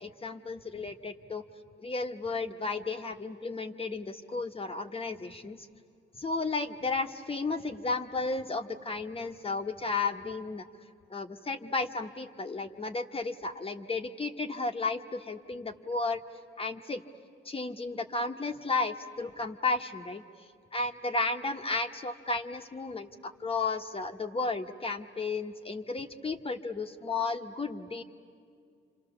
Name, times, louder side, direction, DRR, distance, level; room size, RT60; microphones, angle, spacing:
voice 1, 0.0-1.4 1.8-5.7 6.1-10.7 11.1-16.2 16.6-17.0 17.4-20.2 20.7-28.0, left 3 dB, 30° left, 5 dB, 1.3 m, -33 dB
29.5 x 26.5 x 7.1 m, 2.3 s
cardioid pair, 90°, 20 cm